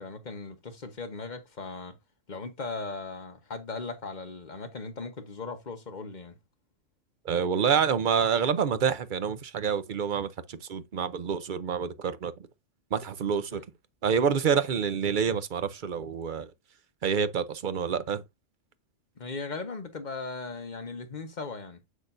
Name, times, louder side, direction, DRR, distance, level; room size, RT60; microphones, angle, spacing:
voice 1, 0.0-1.9 2.3-6.4 13.5-13.6 19.2-21.8, left 3 dB, 40° left, 1.2 m, -38 dB
voice 2, 7.2-12.3 12.9-13.6 14.0-16.5 17.0-18.2, right 7 dB, 50° right, 0.7 m, -27 dB
7.2 x 6.4 x 2.6 m
omnidirectional pair, 1.3 m